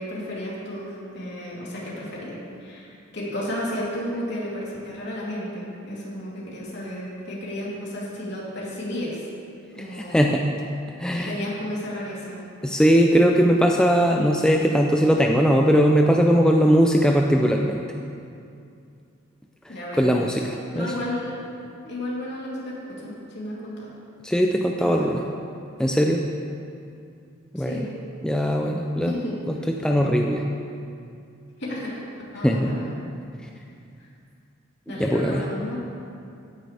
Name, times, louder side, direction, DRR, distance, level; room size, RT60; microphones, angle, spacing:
voice 1, 0.0-9.2 9.8-10.3 11.2-12.4 19.7-20.1 20.7-21.4 21.8-23.9 24.8-25.2 27.5-27.9 29.0-29.4 31.6-32.0 32.3-32.9 34.9-35.8, left 1 dB, 55° left, -6 dB, 3.3 m, -32 dB
voice 2, 9.8-10.5 11.0-11.4 12.6-17.8 19.7-20.9 24.2-25.2 25.8-26.2 27.5-27.9 28.2-29.1 29.5-30.4 32.4-32.7 35.0-35.4, equal, 5° left, 1 dB, 0.4 m, -20 dB
15.5 x 10.0 x 3.4 m, 2.5 s
head